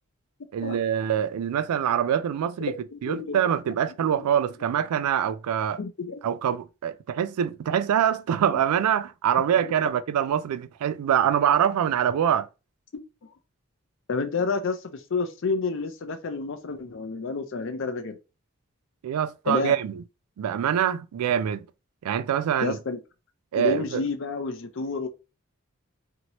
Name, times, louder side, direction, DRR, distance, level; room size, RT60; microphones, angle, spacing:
voice 1, 0.5-2.7 3.0-5.8 6.2-12.5 19.0-20.0 20.4-21.7 22.0-22.8 23.5-24.0, right 9 dB, 90° right, 0.3 m, -24 dB
voice 2, 2.9-3.4 4.2-4.3 5.8-6.2 9.6-9.7 14.1-18.2 19.5-19.7 22.6-23.0 23.5-25.1, left 4 dB, 55° left, 0.5 m, -29 dB
2.9 x 2.8 x 2.9 m
head